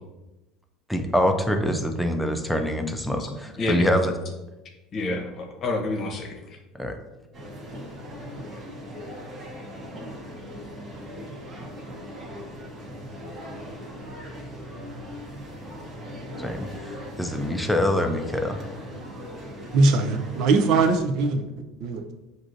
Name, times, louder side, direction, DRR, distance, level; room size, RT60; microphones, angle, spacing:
voice 1, 0.9-4.1 6.7-7.0 16.4-18.6, equal, 5° left, 5 dB, 0.5 m, -25 dB
voice 2, 3.2-4.0 4.9-6.6, left 2 dB, 35° left, 2 dB, 0.9 m, -29 dB
sound 1, 7.3-21.0, equal, 30° right, 1.0 m, -39 dB
voice 3, 19.7-21.5 21.8-22.1, right 3 dB, 60° right, 7 dB, 0.5 m, -21 dB
7.5 x 2.6 x 2.6 m, 1.0 s
supercardioid pair, 130°, 0 cm